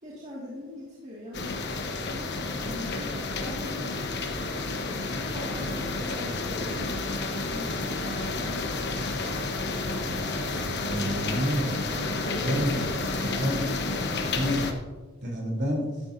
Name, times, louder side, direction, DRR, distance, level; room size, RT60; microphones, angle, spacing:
voice 1, 0.0-1.6 2.0-4.0 4.8-8.9 11.0-13.4, left 1 dB, 35° right, -6 dB, 2.1 m, -42 dB
sound 1, 1.3-14.7, left 3 dB, 55° left, 1.1 m, -30 dB
voice 2, 10.9-11.7 12.4-12.8 13.3-13.7 14.3-14.6 15.2-15.9, equal, 55° right, -2 dB, 3.5 m, -28 dB
13.5 x 10.5 x 2.7 m, 1.3 s
head